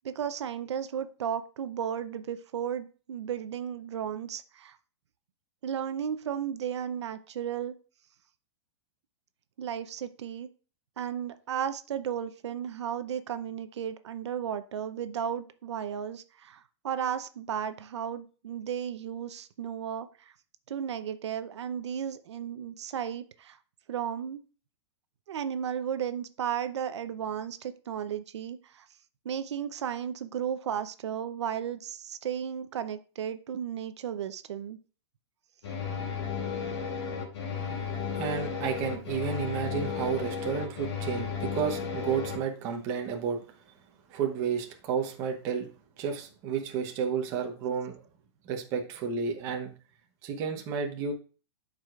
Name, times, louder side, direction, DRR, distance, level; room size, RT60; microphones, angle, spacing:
voice 1, 0.0-4.8 5.6-7.7 9.6-10.5 11.0-20.3 20.7-23.6 23.9-24.4 25.3-28.9 29.2-34.8, right 8 dB, 75° right, 11 dB, 0.7 m, -34 dB
sound 1, 35.6-42.4, left 6 dB, 70° left, 2.5 m, -34 dB
voice 2, 38.1-43.4 44.1-45.7 46.0-48.0 48.4-49.7 50.2-51.1, right 6 dB, 20° right, 3 dB, 0.9 m, -31 dB
12.0 x 4.9 x 2.4 m, 0.37 s
supercardioid pair, 180°, 15 cm